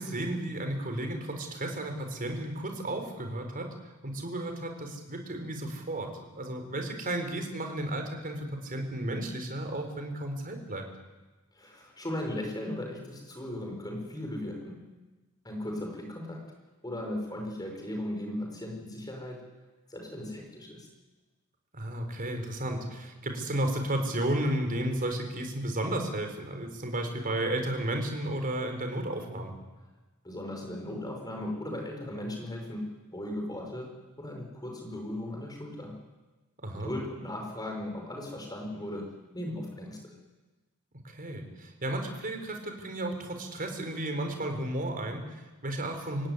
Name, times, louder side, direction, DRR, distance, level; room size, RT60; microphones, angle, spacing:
voice 1, 0.0-3.7 4.0-10.9 21.7-29.5 36.6-36.9 41.0-46.3, right 1 dB, 40° right, 5 dB, 4.3 m, -33 dB
voice 2, 11.5-14.8 15.4-16.5 16.8-19.5 19.9-20.9 30.2-36.0 36.8-40.1, left 1 dB, 20° left, 1 dB, 5.7 m, -37 dB
26.5 x 16.5 x 9.8 m, 1.2 s
head